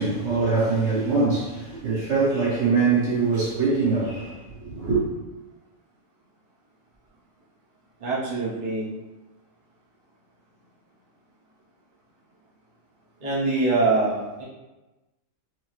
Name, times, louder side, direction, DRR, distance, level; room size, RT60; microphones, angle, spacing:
voice 1, 0.0-5.0, right 4 dB, 60° right, 1.5 m, -23 dB
voice 2, 8.0-8.9 13.2-14.4, right 3 dB, 45° right, 0.8 m, -24 dB
4.7 x 2.0 x 2.9 m
omnidirectional pair, 1.4 m